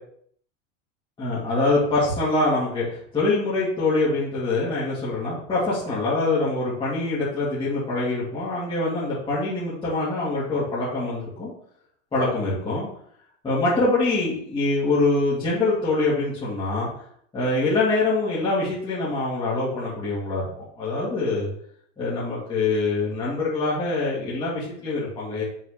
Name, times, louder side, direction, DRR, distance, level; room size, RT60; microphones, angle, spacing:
voice 1, 1.2-11.5 12.1-12.9 13.4-16.9 17.3-20.5 20.8-21.5 22.0-25.4, left 2 dB, 15° left, -9 dB, 2.2 m, -24 dB
6.2 x 4.2 x 5.0 m, 0.66 s
supercardioid pair, 155°, 38 cm